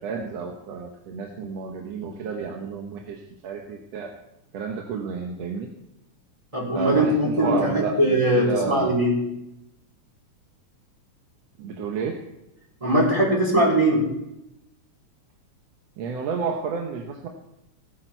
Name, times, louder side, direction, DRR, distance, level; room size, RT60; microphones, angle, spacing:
voice 1, 0.0-4.1 4.5-5.7 6.7-9.0 11.6-12.3 16.0-17.3, right 5 dB, 65° right, 2 dB, 2.1 m, -30 dB
voice 2, 6.5-9.1 12.8-14.0, right 1 dB, 10° right, -3 dB, 4.1 m, -21 dB
19.0 x 8.7 x 4.5 m, 0.87 s
omnidirectional pair, 3.4 m